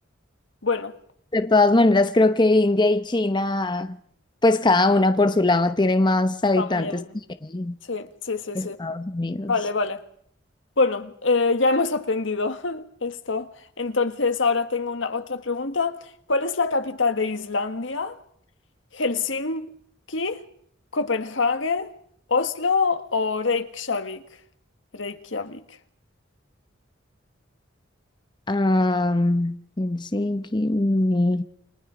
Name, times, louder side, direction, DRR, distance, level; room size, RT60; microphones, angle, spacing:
voice 1, 0.6-0.9 6.6-7.1 7.9-8.8 9.4-10.0 10.8-13.5 13.8-16.0 16.3-18.2 18.9-19.7 20.1-20.5 20.9-21.9 22.3-24.2 24.9-25.6, left 4 dB, 80° left, 1.5 m, -25 dB
voice 2, 1.3-3.9 4.4-7.0 7.4-7.8 8.5-9.5 28.5-31.4, left 2 dB, 25° left, 0.8 m, -21 dB
29.0 x 22.5 x 5.1 m
head